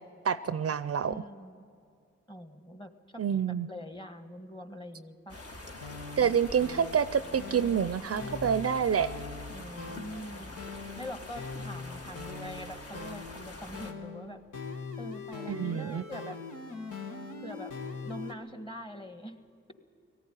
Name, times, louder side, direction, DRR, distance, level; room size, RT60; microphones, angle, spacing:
voice 1, 0.2-1.1 3.2-3.7 6.2-9.1 15.5-16.0, right 7 dB, 50° right, 14 dB, 0.5 m, -27 dB
voice 2, 1.1-1.6 2.3-3.2 3.7-5.4 7.9-8.5 9.5-10.5 11.0-14.4 15.0-16.4 17.4-17.7 18.0-19.4, equal, 15° left, 8 dB, 1.6 m, -43 dB
sound 1, 5.3-13.9, left 2 dB, 55° left, 2.2 m, -45 dB
sound 2, 5.7-18.3, left 4 dB, 85° left, 1.7 m, -42 dB
18.5 x 14.5 x 10.0 m, 2.3 s
cardioid pair, 50°, 30 cm